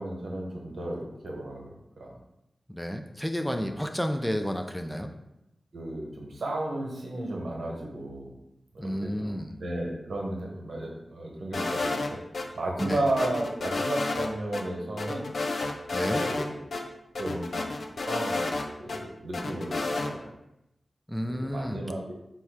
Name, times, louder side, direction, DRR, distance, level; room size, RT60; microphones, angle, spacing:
voice 1, 0.0-2.2 3.4-3.7 5.7-8.3 8.7-12.2 12.5-15.3 16.0-16.7 17.2-17.7 18.0-18.4 18.8-20.3 21.3-22.1, right 1 dB, 80° right, -1 dB, 0.9 m, -34 dB
voice 2, 2.7-5.1 8.8-9.5 12.8-13.0 15.9-16.2 21.1-21.8, equal, 5° left, 5 dB, 0.4 m, -31 dB
sound 1, 11.5-12.4 12.8-14.3 14.5-14.6 15.0-16.5 16.7-16.8 17.1-19.0 19.3-20.1, left 3 dB, 80° left, 0.5 m, -30 dB
4.2 x 2.4 x 4.6 m, 0.88 s
cardioid pair, 50°, 0 cm